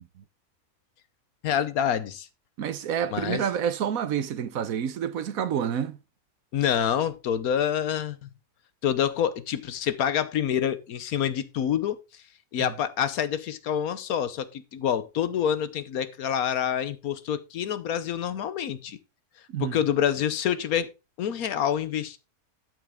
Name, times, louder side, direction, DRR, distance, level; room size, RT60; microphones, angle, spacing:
voice 1, 1.4-2.3 3.1-3.4 6.5-8.3 8.8-12.2 12.5-19.0 19.6-20.9 21.2-22.2, left 9 dB, 75° left, 1.3 m, -27 dB
voice 2, 2.6-6.0 12.6-12.7 19.5-19.8, right 8 dB, 70° right, 1.2 m, -28 dB
12.5 x 6.3 x 3.5 m
omnidirectional pair, 1.6 m